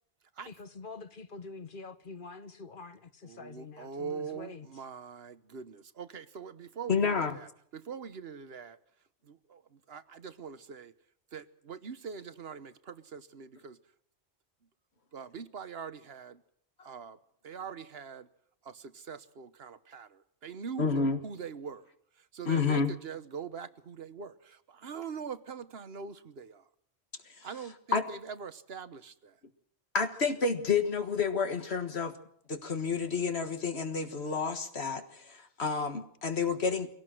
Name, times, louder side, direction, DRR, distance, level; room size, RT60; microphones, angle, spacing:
voice 1, 0.5-4.7, left 4 dB, 55° left, 12 dB, 1.4 m, -46 dB
voice 2, 3.2-8.8 9.2-10.9 11.3-13.8 15.1-16.4 16.8-17.2 17.4-18.3 18.6-21.9 22.2-26.6 27.4-29.4, right 6 dB, 70° right, 13 dB, 1.3 m, -43 dB
voice 3, 6.9-7.4 20.8-21.2 22.5-22.9 27.4-27.5 27.9-28.0 29.9-32.1 32.5-36.9, left 5 dB, 75° left, 7 dB, 1.9 m, -29 dB
23.5 x 17.5 x 7.7 m, 0.68 s
omnidirectional pair, 1.1 m